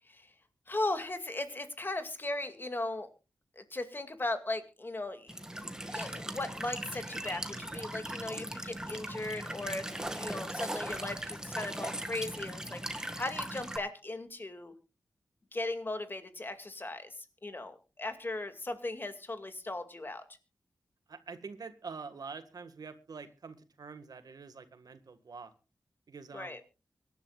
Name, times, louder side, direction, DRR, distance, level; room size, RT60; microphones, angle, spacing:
voice 1, 0.7-3.1 3.6-5.3 5.9-9.9 10.1-14.7 15.5-20.2 26.3-26.6, left 2 dB, 30° left, 8 dB, 2.2 m, -37 dB
Walk footsteps / Chirp tweet / Stream, 5.3-13.8, right 1 dB, 10° right, 1.8 m, -39 dB
voice 2, 21.1-25.5 26.1-26.6, right 5 dB, 70° right, 10 dB, 1.7 m, -46 dB
24.5 x 11.5 x 2.4 m, 0.31 s
wide cardioid pair, 115°, 7 cm